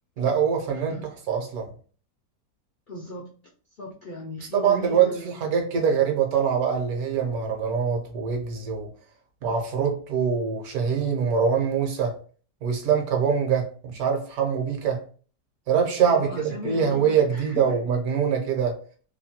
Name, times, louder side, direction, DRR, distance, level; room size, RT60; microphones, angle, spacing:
voice 1, 0.2-1.7 4.4-8.9 9.4-12.2 12.6-15.0 15.7-18.8, right 7 dB, 70° right, 1.1 m, -24 dB
voice 2, 2.9-3.3 3.8-5.3 16.1-17.8, left 1 dB, 85° left, 0.4 m, -36 dB
2.9 x 2.2 x 2.7 m
omnidirectional pair, 1.7 m